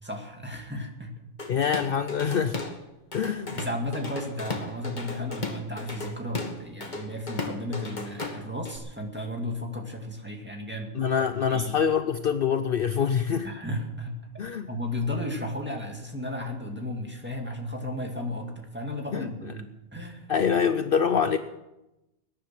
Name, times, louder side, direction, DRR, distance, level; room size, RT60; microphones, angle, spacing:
voice 1, 0.0-1.1 3.2-10.9 11.5-11.7 13.4-14.2 14.7-20.3, left 1 dB, 10° right, 1 dB, 2.2 m, -34 dB
Drum kit / Drum, 1.4-2.8 3.1-8.8, left 3 dB, 40° left, 1.8 m, -36 dB
voice 2, 1.5-2.6 3.1-3.6 10.9-13.5 14.4-14.7 19.1-19.5 20.3-21.4, left 7 dB, 55° left, 10 dB, 0.8 m, -25 dB
20.5 x 10.5 x 5.9 m, 0.94 s
omnidirectional pair, 1.2 m